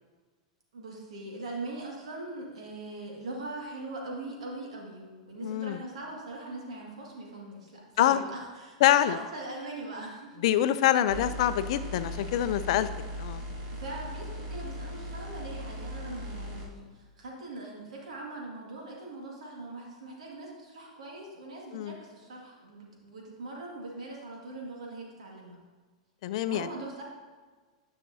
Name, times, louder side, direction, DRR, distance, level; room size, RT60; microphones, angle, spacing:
voice 1, 0.7-10.6 11.0-11.3 13.7-25.6 26.5-27.0, right 2 dB, 85° right, -2 dB, 1.9 m, -41 dB
voice 2, 5.4-5.8 8.0-8.2 8.8-9.2 10.4-12.9 13.2-13.4 21.7-22.0 26.2-26.7, left 12 dB, 65° left, 13 dB, 0.4 m, -25 dB
sound 1, 11.1-16.7, equal, 50° right, 1.8 m, -38 dB
10.0 x 5.8 x 2.7 m, 1.4 s
hypercardioid pair, 110°, 3 cm